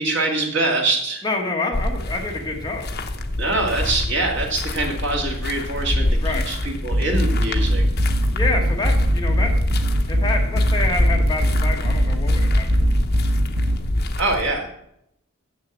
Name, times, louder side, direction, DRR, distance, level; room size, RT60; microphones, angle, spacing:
voice 1, 0.0-1.2 3.4-7.8 14.2-14.7, right 2 dB, 55° right, 0 dB, 2.3 m, -24 dB
voice 2, 1.2-2.9 6.2-6.4 8.3-9.5 10.1-12.6, left 3 dB, 20° left, 1 dB, 1.3 m, -27 dB
sound 1, 1.7-14.5, left 1 dB, 45° left, 0.9 m, -26 dB
sound 2, 6.9-13.8, equal, 75° right, 1.1 m, -21 dB
7.4 x 6.6 x 7.9 m, 0.76 s
head